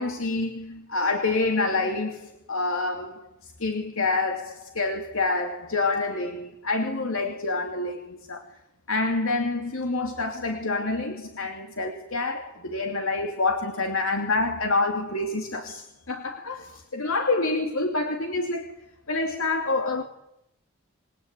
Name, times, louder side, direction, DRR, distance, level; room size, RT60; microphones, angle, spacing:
voice 1, 0.0-8.4 8.9-18.7 19.1-20.0, left 3 dB, 80° left, 2.8 m, -27 dB
28.0 x 21.5 x 9.6 m
head